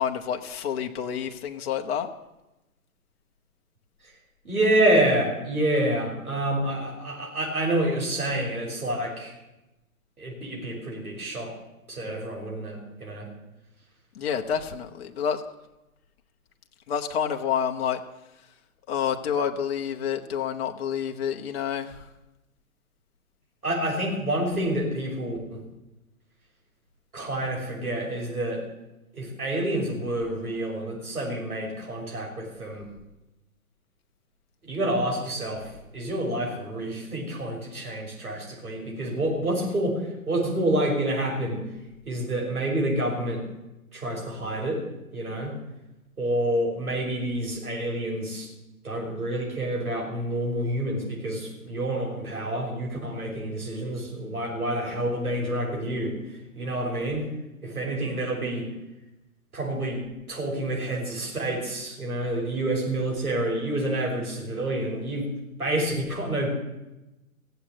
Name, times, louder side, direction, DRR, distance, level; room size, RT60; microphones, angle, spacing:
voice 1, 0.0-2.1 14.1-15.4 16.9-18.0 18.9-22.1, left 8 dB, 45° left, 3 dB, 1.3 m, -28 dB
voice 2, 4.4-9.3 10.2-11.5 11.9-13.3 23.6-25.6 27.1-28.6 29.1-32.9 34.6-40.0 40.3-41.7 42.1-43.5 43.9-44.8 45.1-45.5 46.2-48.5 48.8-56.1 56.5-57.3 57.6-58.7 59.5-65.3 65.6-66.5, right 1 dB, 85° right, -2 dB, 6.3 m, -28 dB
16.5 x 8.1 x 8.6 m, 0.97 s
figure-of-eight pair, 130°, 43 cm